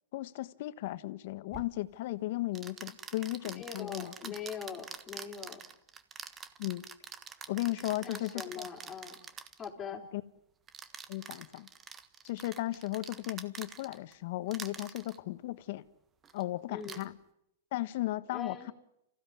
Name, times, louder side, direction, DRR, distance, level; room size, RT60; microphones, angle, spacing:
voice 1, 0.1-4.3 6.6-6.8 7.5-8.7 10.1-10.2 11.1-11.7 12.2-15.8 16.3-17.2 17.7-18.7, left 17 dB, 55° left, 1.3 m, -36 dB
sound 1, 1.5-1.7 2.6-9.7 10.7-14.1 14.5-15.2 16.2-16.4 16.8-17.1, right 7 dB, 20° right, 1.4 m, -46 dB
voice 2, 3.6-5.6 7.8-9.2 9.6-10.0 16.7-17.0 18.3-18.7, left 6 dB, 20° left, 4.3 m, -42 dB
28.0 x 16.0 x 9.8 m
hypercardioid pair, 135°, 0 cm